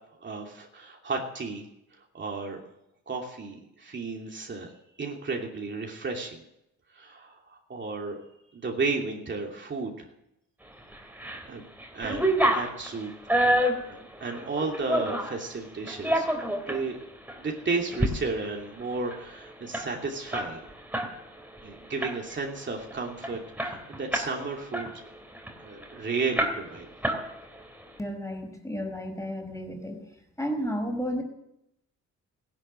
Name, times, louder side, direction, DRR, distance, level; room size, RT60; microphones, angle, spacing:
voice 1, 0.2-1.7 2.1-2.6 3.1-4.7 5.0-6.4 6.9-8.2 8.5-10.1 11.5-11.6 11.9-13.1 13.4-16.3 16.5-17.1 17.4-20.6 21.6-24.9 25.6-26.9, right 4 dB, 40° right, 0 dB, 2.9 m, -33 dB
sound 1, 10.9-11.5 11.8-15.4 15.9-16.8 17.3-17.4 17.8-18.1 18.4-18.5 18.8-21.1 21.4-21.6 22.0-22.5 22.9-23.0 23.2-24.4 24.7-25.9 26.4-26.8 27.0-27.7, right 1 dB, 5° right, 3.4 m, -27 dB
voice 2, 28.0-30.0 30.4-31.2, equal, 10° left, 4 dB, 4.8 m, -32 dB
16.0 x 11.5 x 7.7 m, 0.82 s
cardioid pair, 90°, 30 cm